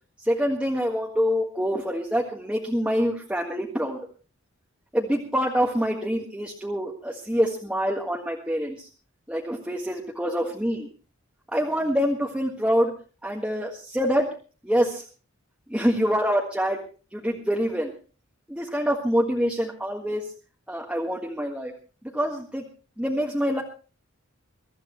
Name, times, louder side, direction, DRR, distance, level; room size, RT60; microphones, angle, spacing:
voice 1, 0.2-4.0 4.9-8.9 9.3-10.9 11.5-12.9 13.2-14.3 14.6-15.0 15.7-16.8 17.1-17.9 18.5-20.3 20.7-21.7 22.1-22.6 23.0-23.6, equal, 5° right, -1 dB, 1.6 m, -25 dB
23.0 x 13.5 x 3.1 m, 0.36 s
head